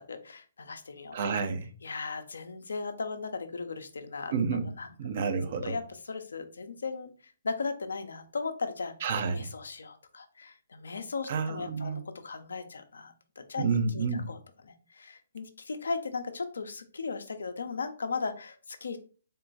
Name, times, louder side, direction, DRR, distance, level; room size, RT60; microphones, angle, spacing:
voice 1, 0.0-1.2 1.8-4.3 4.8-4.9 5.6-7.1 7.4-8.9 9.3-14.4 14.6-19.0, left 4 dB, 75° left, 0.6 m, -37 dB
voice 2, 1.1-1.7 4.3-4.7 5.0-5.8 9.0-9.5 11.3-12.0 13.6-14.3, right 5 dB, 50° right, 0.7 m, -30 dB
3.7 x 2.2 x 4.0 m
hypercardioid pair, 135°, 0 cm